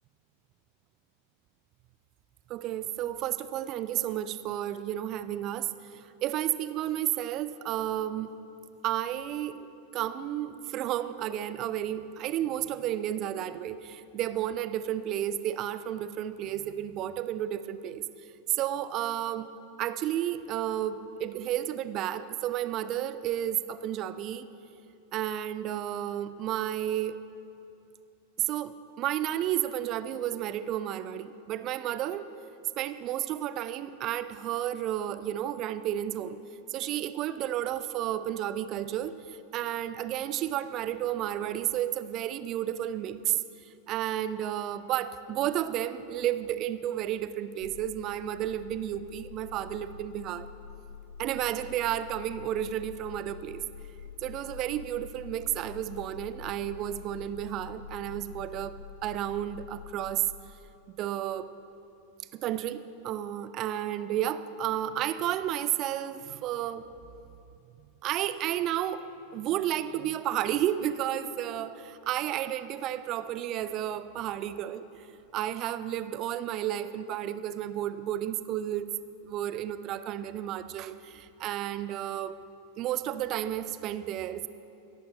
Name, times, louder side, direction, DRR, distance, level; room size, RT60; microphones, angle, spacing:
voice 1, 2.5-8.3 8.8-9.6 9.9-18.0 18.5-19.5 19.8-24.5 25.1-27.2 28.4-32.2 32.8-36.4 36.7-50.5 51.2-53.6 54.2-60.3 61.0-61.5 62.3-66.8 68.0-78.9 79.2-82.4 82.8-84.5, right 12 dB, 35° right, 13 dB, 0.6 m, -32 dB
sound 1, 47.6-60.4, left 7 dB, 65° left, 0.7 m, -46 dB
22.0 x 11.0 x 4.1 m, 2.7 s
figure-of-eight pair, 90°, 0 cm